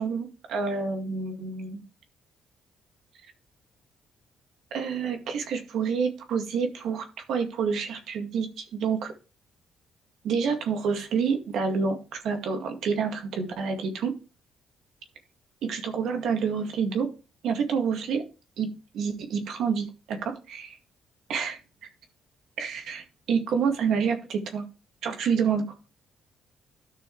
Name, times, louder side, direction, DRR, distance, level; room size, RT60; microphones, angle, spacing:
voice 1, 0.0-1.8 4.7-9.1 10.2-14.1 15.6-17.1 17.4-18.2 18.6-18.7 18.9-20.8 21.3-21.6 22.6-24.6 25.0-25.6, right 6 dB, 75° right, 5 dB, 2.1 m, -28 dB
13.0 x 6.2 x 3.2 m, 0.32 s
cardioid pair, 90°, 0 cm